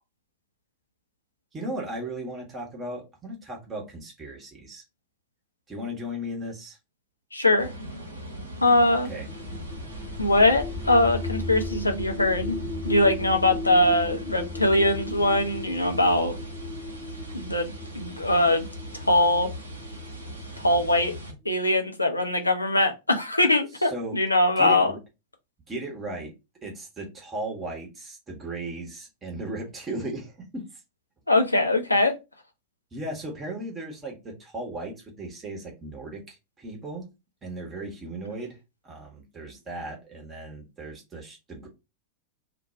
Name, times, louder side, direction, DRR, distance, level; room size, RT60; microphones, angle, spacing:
voice 1, 1.5-4.8 5.7-6.8 9.0-9.3 23.7-24.2 24.6-25.0 25.7-26.3 26.6-30.8 32.9-37.1 37.4-38.6 38.8-41.7, right 1 dB, 20° right, 1.0 m, -36 dB
voice 2, 7.3-7.7 8.6-9.1 10.2-12.5 12.8-16.4 17.3-18.7 19.1-19.5 20.6-21.1 21.5-24.9 31.3-32.1, left 1 dB, 85° left, 0.5 m, -22 dB
sound 1, 7.6-21.3, right 1 dB, 80° right, 0.8 m, -39 dB
sound 2, 9.3-21.1, left 3 dB, 10° left, 0.3 m, -37 dB
2.5 x 2.2 x 3.9 m
figure-of-eight pair, 90°, 0 cm